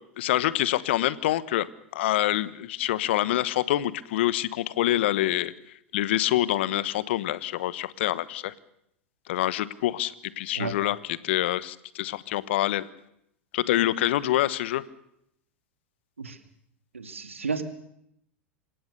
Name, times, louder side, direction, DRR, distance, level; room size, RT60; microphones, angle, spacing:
voice 1, 0.2-1.7 1.9-5.5 5.9-8.5 9.3-12.9 13.5-14.8, left 14 dB, 65° left, 18 dB, 1.1 m, -26 dB
voice 2, 16.9-17.6, right 5 dB, 90° right, 9 dB, 2.3 m, -32 dB
27.0 x 17.0 x 6.7 m, 0.77 s
hypercardioid pair, 90°, 7 cm